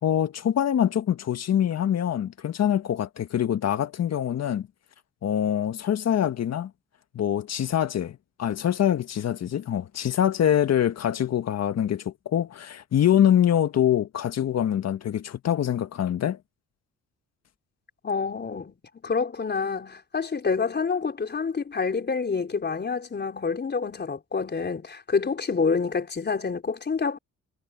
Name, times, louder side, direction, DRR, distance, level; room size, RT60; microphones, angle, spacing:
voice 1, 0.0-4.7 5.2-6.7 7.1-16.4, left 10 dB, 60° left, 1.7 m, -24 dB
voice 2, 18.0-18.7 19.0-27.2, left 5 dB, 35° left, 4.4 m, -27 dB
cardioid pair, 90°, 30 cm